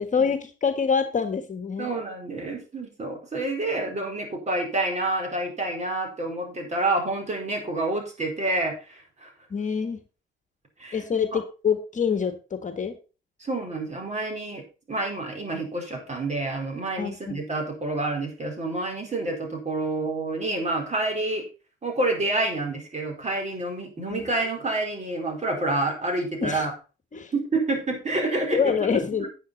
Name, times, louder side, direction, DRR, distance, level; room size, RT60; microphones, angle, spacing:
voice 1, 0.0-1.9 9.5-10.0 10.9-13.0 17.0-17.4 24.1-24.2 26.4-26.6 27.1-27.3 28.5-29.3, left 6 dB, 40° left, 8 dB, 1.6 m, -26 dB
voice 2, 1.8-9.3 10.8-11.0 11.3-11.4 13.4-21.4 21.8-26.7 27.3-28.8 29.2-29.3, right 2 dB, 35° right, 3 dB, 4.6 m, -28 dB
10.0 x 8.9 x 4.2 m, 0.33 s
cardioid pair, 90°, 20 cm